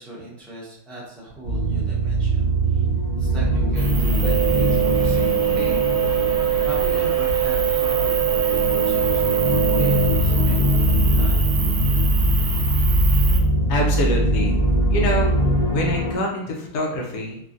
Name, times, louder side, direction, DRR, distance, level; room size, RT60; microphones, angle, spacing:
voice 1, 0.0-2.8 3.1-5.9 6.6-11.5, right 1 dB, ahead, -7 dB, 0.5 m, -37 dB
sound 1, 1.4-16.1, right 1 dB, 50° left, 1.1 m, -21 dB
sound 2, 3.8-13.4, right 2 dB, 75° right, 1.0 m, -28 dB
sound 3, 4.2-10.2, right 12 dB, 20° right, 0.9 m, -22 dB
voice 2, 13.7-15.3 15.7-17.4, left 1 dB, 80° left, -1 dB, 1.2 m, -25 dB
3.4 x 2.3 x 2.5 m, 0.76 s
omnidirectional pair, 1.7 m